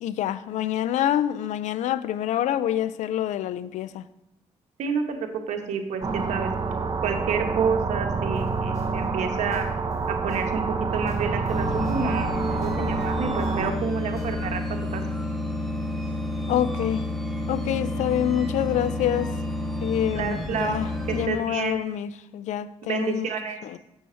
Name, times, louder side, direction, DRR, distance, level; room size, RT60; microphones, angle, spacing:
voice 1, 0.0-4.1 16.5-17.1 17.5-19.3 19.8-23.3 23.6-23.8, left 11 dB, 85° left, 0.4 m, -27 dB
voice 2, 4.8-5.2 5.5-6.5 7.0-9.7 10.1-10.6 10.9-14.6 14.9-15.0 20.1-20.8 21.1-21.8 22.9-23.6, right 6 dB, 75° right, 1.0 m, -29 dB
sound 1, 6.0-13.7, right 4 dB, 35° right, 0.7 m, -28 dB
sound 2, 8.4-14.6, left 1 dB, 25° left, 1.5 m, -44 dB
sound 3, 11.5-21.3, left 1 dB, ahead, 1.1 m, -30 dB
7.0 x 6.4 x 4.3 m
cardioid pair, 90°, 12 cm